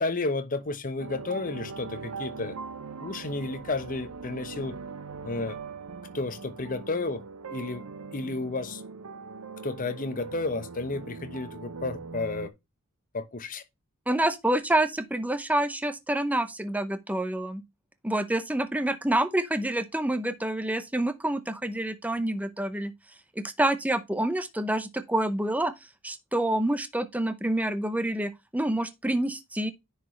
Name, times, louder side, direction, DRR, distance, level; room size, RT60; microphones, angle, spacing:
voice 1, 0.0-2.5 3.0-4.8 5.2-5.6 6.1-7.2 7.5-7.8 8.1-8.8 9.6-12.5 13.1-13.6, left 3 dB, 40° left, 0.9 m, -32 dB
sound 1, 1.0-12.5, right 4 dB, 85° right, 0.7 m, -41 dB
voice 2, 14.1-17.6 18.0-22.9 23.4-25.7 26.0-29.7, right 1 dB, 5° right, 0.7 m, -27 dB
9.8 x 4.8 x 3.1 m
head